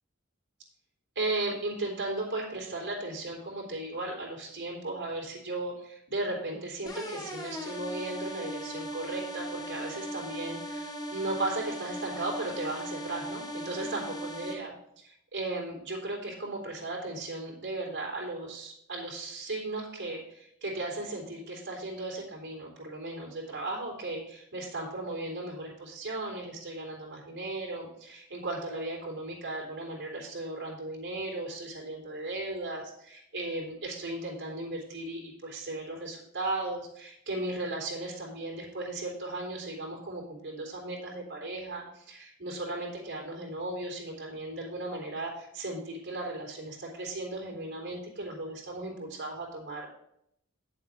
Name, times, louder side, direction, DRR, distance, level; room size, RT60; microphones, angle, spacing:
voice 1, 1.2-49.9, right 2 dB, 60° right, -1 dB, 3.6 m, -36 dB
sound 1, 6.9-14.5, equal, 20° left, 1.3 m, -38 dB
8.5 x 7.6 x 4.3 m, 0.72 s
head